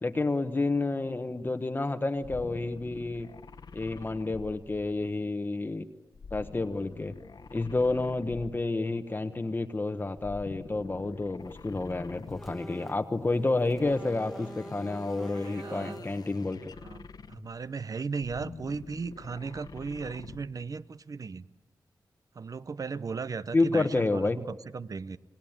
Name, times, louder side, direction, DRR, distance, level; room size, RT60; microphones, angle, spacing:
voice 1, 0.0-3.3 3.7-5.8 6.3-7.1 7.5-16.7 23.5-24.4, left 2 dB, 25° left, 8 dB, 1.0 m, -29 dB
sound 1, 2.2-5.2 6.1-8.8 10.1-12.7 13.7-17.7 18.1-20.6, left 5 dB, 65° left, 1.1 m, -47 dB
sound 2, 12.3-13.0 13.3-16.2, equal, ahead, 1.4 m, -45 dB
voice 2, 15.3-16.1 16.8-21.4 22.3-25.2, right 5 dB, 50° right, 16 dB, 0.8 m, -37 dB
28.0 x 19.0 x 8.7 m, 1.3 s
wide cardioid pair, 95°, 7 cm